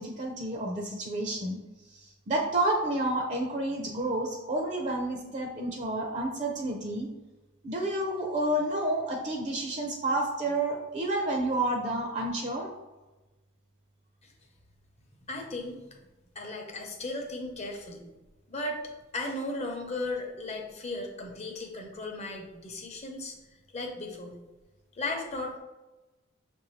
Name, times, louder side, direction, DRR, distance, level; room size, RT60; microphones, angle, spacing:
voice 1, 0.0-1.6 1.9-7.1 7.6-12.7, right 1 dB, 35° right, 1 dB, 0.6 m, -30 dB
voice 2, 15.2-16.0 16.3-18.0 18.5-18.8 19.1-23.3 23.7-24.4 25.0-25.6, left 2 dB, 35° left, 2 dB, 0.7 m, -36 dB
6.3 x 2.6 x 3.2 m, 1.1 s
head